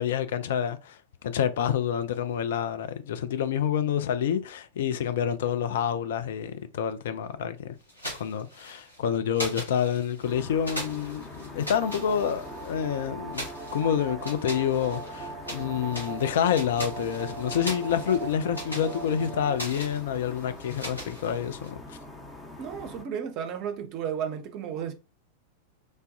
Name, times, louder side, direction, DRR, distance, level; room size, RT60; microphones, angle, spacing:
voice 1, 0.0-7.8 8.2-13.5 13.7-22.0, left 8 dB, 60° left, 0.3 m, -28 dB
sound 1, 7.9-9.0 9.3-10.3 10.6-12.7 13.3-15.7 15.9-21.7, equal, 85° left, 1.1 m, -40 dB
sound 2, 10.2-23.0, left 2 dB, 10° left, 0.7 m, -44 dB
sound 3, 11.8-19.6, right 4 dB, 20° right, 0.9 m, -40 dB
voice 2, 22.6-24.9, right 8 dB, 40° right, 0.5 m, -33 dB
3.2 x 2.2 x 2.6 m
figure-of-eight pair, 90°, 0 cm